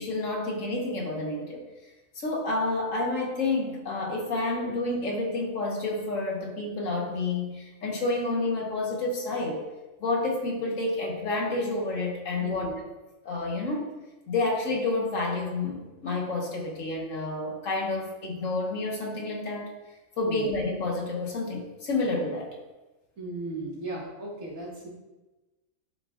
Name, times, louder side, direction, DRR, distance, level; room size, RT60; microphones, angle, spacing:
voice 1, 0.0-1.6 2.1-9.6 10.0-12.7 13.2-13.9 14.3-19.7 20.2-22.5, left 2 dB, 70° left, 0 dB, 1.5 m, -29 dB
voice 2, 12.4-12.8 20.2-20.5 23.2-24.9, right 2 dB, 85° right, -4 dB, 2.2 m, -36 dB
11.5 x 4.6 x 2.4 m, 1.1 s
omnidirectional pair, 1.4 m